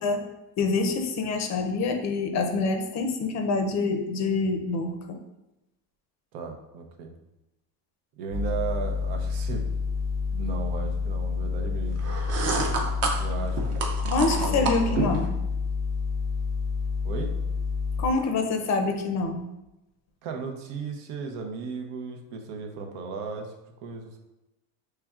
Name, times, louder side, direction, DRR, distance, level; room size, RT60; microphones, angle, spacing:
voice 1, 0.6-5.2 14.1-15.3 18.0-19.4, left 3 dB, 40° left, 5 dB, 0.4 m, -26 dB
voice 2, 6.3-7.1 8.2-9.7 10.3-12.1 13.2-13.6 14.3-15.1 17.0-17.3 20.2-23.5 23.8-24.2, right 4 dB, 85° right, 4 dB, 0.8 m, -35 dB
sound 1, 8.3-18.1, left 5 dB, ahead, 0.7 m, -29 dB
sound 2, 12.0-15.3, right 3 dB, 35° right, 0.5 m, -29 dB
5.7 x 3.3 x 2.3 m, 0.95 s
cardioid pair, 155°, 47 cm